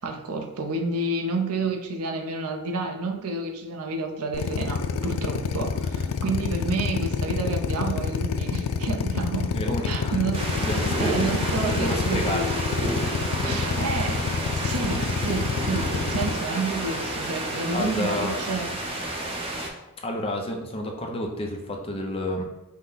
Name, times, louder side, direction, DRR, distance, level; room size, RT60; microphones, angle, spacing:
voice 1, 0.0-9.6 9.8-10.7 11.0-12.6 13.3-14.3 14.5-18.8, right 3 dB, 70° right, 3 dB, 0.6 m, -30 dB
Drill, 4.3-16.3, left 5 dB, 90° left, 0.4 m, -27 dB
voice 2, 9.5-10.2 10.6-11.3 11.6-12.5 13.4-13.8 16.5-16.6 17.7-18.3 20.0-22.4, left 1 dB, 25° left, 1 dB, 0.6 m, -30 dB
sound 1, 10.3-19.7, right 1 dB, 25° right, 0.7 m, -30 dB
5.5 x 2.2 x 3.9 m, 0.99 s
head